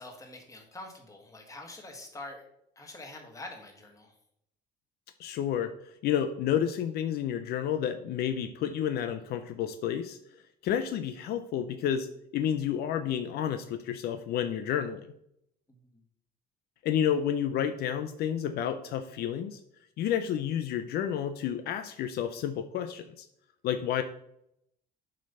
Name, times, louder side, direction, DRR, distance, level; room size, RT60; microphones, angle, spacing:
voice 1, 0.0-2.5 2.7-4.1 15.7-15.8, left 2 dB, 20° left, 2 dB, 1.7 m, -45 dB
voice 2, 5.2-5.7 6.0-10.2 10.6-12.1 12.3-15.1 16.8-19.6 20.0-23.3 23.6-24.0, left 9 dB, 70° left, 9 dB, 0.5 m, -30 dB
7.5 x 3.2 x 5.5 m, 0.75 s
cardioid pair, 110°, 17 cm